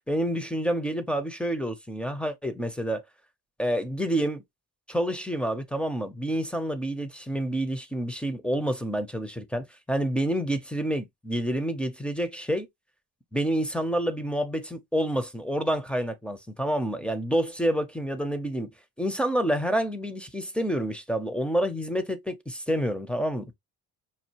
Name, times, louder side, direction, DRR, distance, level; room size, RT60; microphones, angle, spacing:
voice 1, 0.1-3.0 3.6-4.4 4.9-12.7 13.3-18.7 19.0-23.5, right 1 dB, 5° left, 0.6 m, -28 dB
5.5 x 2.3 x 2.9 m
cardioid pair, 135°, 38 cm